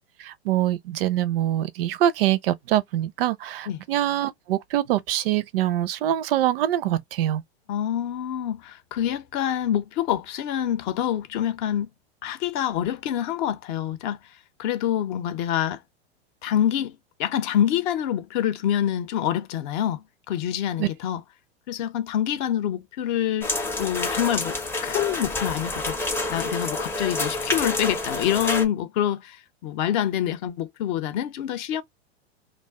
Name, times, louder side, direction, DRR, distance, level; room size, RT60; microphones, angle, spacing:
voice 1, 0.2-7.4 20.8-20.9, right 12 dB, 60° right, 0.4 m, -24 dB
voice 2, 7.7-11.9 12.2-14.2 14.6-15.8 16.4-21.2 21.7-23.5 23.8-24.6 24.8-26.0 26.3-31.8, left 10 dB, 45° left, 0.6 m, -26 dB
sound 1, 23.4-28.7, left 2 dB, 5° left, 0.5 m, -28 dB
2.4 x 2.1 x 3.5 m
hypercardioid pair, 105°, 32 cm